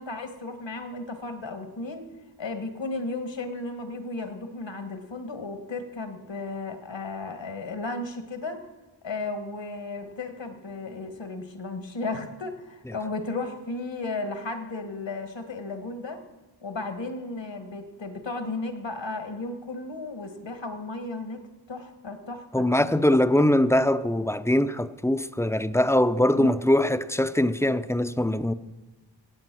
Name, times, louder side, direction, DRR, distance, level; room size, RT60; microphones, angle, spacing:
voice 1, 0.0-2.1 2.4-8.6 9.0-16.2 16.6-21.4 21.7-22.8 26.3-26.5, left 3 dB, 70° left, 1.6 m, -34 dB
voice 2, 22.5-28.5, left 1 dB, 5° left, 0.5 m, -22 dB
17.0 x 8.6 x 6.1 m
wide cardioid pair, 50°, 46 cm